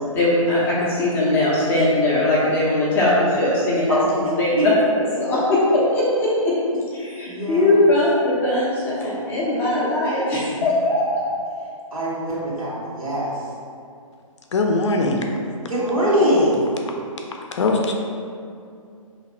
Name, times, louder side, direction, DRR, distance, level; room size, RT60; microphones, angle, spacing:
voice 1, 0.1-5.6 5.9-6.5 6.9-11.2, left 1 dB, 10° left, -8 dB, 0.5 m, -20 dB
voice 2, 7.3-7.7 11.9-13.3 15.7-16.7, equal, 75° right, -7 dB, 1.5 m, -22 dB
voice 3, 14.5-15.3 17.5-17.9, left 3 dB, 55° left, 2 dB, 0.5 m, -20 dB
2.9 x 2.8 x 4.1 m, 2.4 s
figure-of-eight pair, 135°, 18 cm